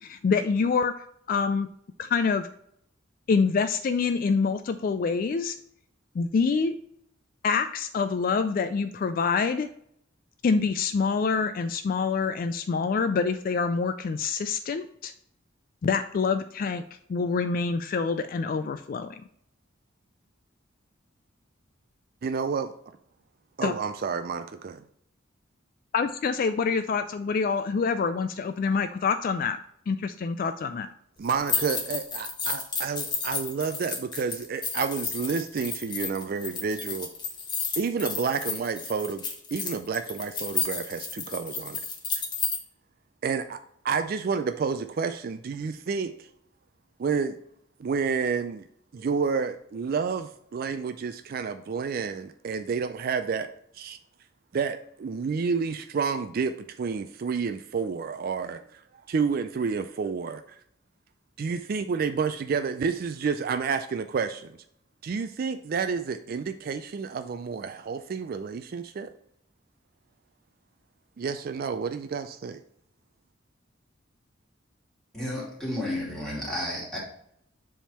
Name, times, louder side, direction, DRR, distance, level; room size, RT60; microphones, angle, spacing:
voice 1, 0.0-1.7 2.0-2.5 3.3-5.6 6.2-6.8 7.4-9.7 10.4-15.1 15.8-16.8 17.1-19.2 23.6-23.7 25.9-29.6 29.9-30.9, left 5 dB, 45° left, 10 dB, 0.3 m, -26 dB
voice 2, 22.2-22.7 23.6-24.8 31.2-37.1 37.8-39.2 39.5-41.8 43.2-43.6 43.8-46.3 47.0-47.4 47.8-48.6 48.9-53.5 53.7-54.0 54.5-58.8 59.1-60.4 61.4-64.5 65.0-69.1 71.2-72.6, right 5 dB, 50° right, 9 dB, 0.3 m, -30 dB
sound 1, 31.2-42.6, left 5 dB, 20° left, 1.0 m, -32 dB
voice 3, 75.1-77.0, left 1 dB, 5° left, -6 dB, 2.6 m, -32 dB
7.4 x 3.6 x 4.3 m, 0.71 s
head